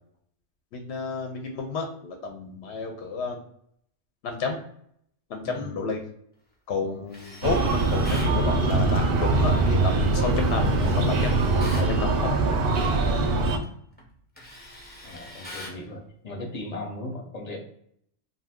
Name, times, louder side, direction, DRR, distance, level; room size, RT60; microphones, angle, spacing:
voice 1, 0.7-3.4 4.2-4.6 5.3-6.0 6.7-11.4 11.8-12.4, left 3 dB, 65° left, 3 dB, 0.7 m, -31 dB
Tools, 7.1-8.4 10.5-11.9 13.4-13.6 14.0-15.8, left 1 dB, 10° left, 0.4 m, -43 dB
Breathing, 7.4-13.6, right 2 dB, 60° right, 0.6 m, -22 dB
voice 2, 15.0-17.6, left 1 dB, 40° left, 0 dB, 0.8 m, -38 dB
2.7 x 2.2 x 3.4 m, 0.69 s
omnidirectional pair, 1.3 m